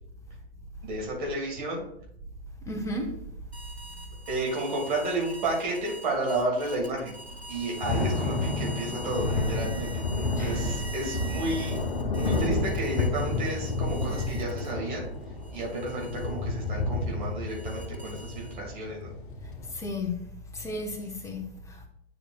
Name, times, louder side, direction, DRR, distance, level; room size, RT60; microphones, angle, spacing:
voice 1, 0.8-1.9 4.3-7.2 7.5-11.8 12.2-15.1 15.5-19.1, right 2 dB, 50° right, 2.4 m, -32 dB
voice 2, 2.7-3.2 10.3-10.6 19.7-20.2 20.5-21.9, left 2 dB, 10° left, 0.9 m, -34 dB
sound 1, 3.5-15.0 15.4-18.8, right 2 dB, 85° right, 1.5 m, -45 dB
Thunder / Rain, 7.3-19.7, left 2 dB, 55° left, 1.1 m, -30 dB
9.9 x 5.0 x 2.4 m
figure-of-eight pair, 105°, 31 cm